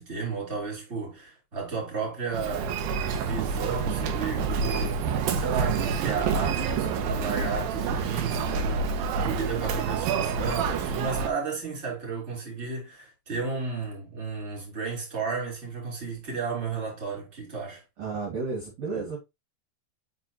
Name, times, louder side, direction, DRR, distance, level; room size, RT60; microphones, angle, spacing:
voice 1, 0.0-2.8 3.1-17.8, right 4 dB, 15° right, 3.1 m, -33 dB
Human voice, 2.3-11.3, right 5 dB, 85° right, 2.0 m, -28 dB
voice 2, 18.0-19.2, right 4 dB, 50° right, 2.4 m, -33 dB
6.0 x 5.6 x 2.8 m
omnidirectional pair, 5.2 m